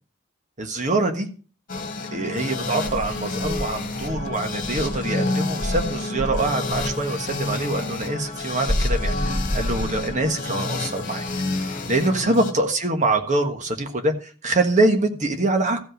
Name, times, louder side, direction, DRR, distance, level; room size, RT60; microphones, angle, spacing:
voice 1, 0.6-1.3 2.1-11.2 11.6-15.8, right 2 dB, 35° right, 5 dB, 1.5 m, -24 dB
sound 1, 1.7-12.5, left 2 dB, 40° left, 2.1 m, -29 dB
Insect, 2.8-5.1 5.6-7.0 8.7-10.3, left 1 dB, 20° right, 2.8 m, -28 dB
14.5 x 5.5 x 6.5 m, 0.39 s
head